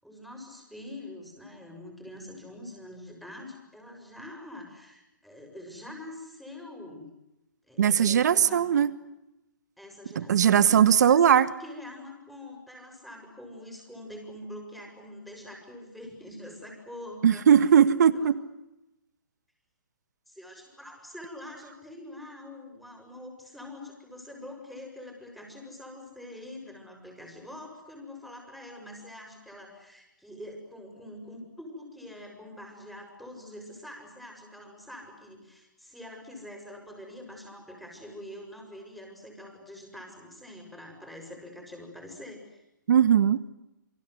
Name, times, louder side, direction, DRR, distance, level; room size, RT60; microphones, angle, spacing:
voice 1, 0.0-7.1 7.6-8.8 9.8-17.5 18.1-18.3 20.3-42.6, left 1 dB, ahead, 2 dB, 6.9 m, -45 dB
voice 2, 7.8-8.9 10.2-11.5 17.2-18.4 42.9-43.4, right 8 dB, 60° right, 14 dB, 1.7 m, -19 dB
28.5 x 24.5 x 8.1 m, 0.93 s
hypercardioid pair, 145°, 11 cm